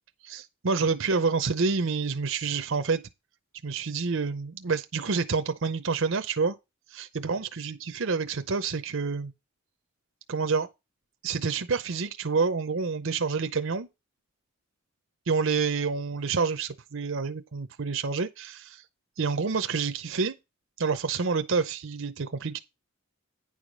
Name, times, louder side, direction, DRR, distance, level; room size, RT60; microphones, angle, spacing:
voice 1, 0.2-3.0 3.6-6.6 6.9-9.3 10.3-10.7 11.2-13.9 15.3-18.8 19.2-20.4 20.8-22.6, right 4 dB, 60° right, 0.7 m, -28 dB
9.6 x 4.9 x 5.3 m
head